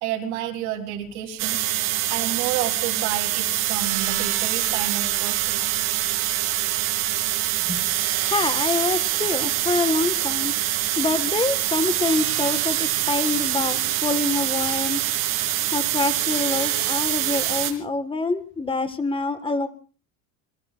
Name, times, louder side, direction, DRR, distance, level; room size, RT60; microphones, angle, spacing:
voice 1, 0.0-1.6 2.1-5.6, right 11 dB, 75° right, 4 dB, 3.6 m, -30 dB
sound 1, 1.4-17.7, right 14 dB, 55° right, 3.1 m, -24 dB
voice 2, 8.2-10.5 11.0-15.0 15.7-19.7, left 3 dB, 15° left, 10 dB, 1.6 m, -26 dB
27.0 x 21.5 x 2.5 m, 0.39 s
supercardioid pair, 135°, 39 cm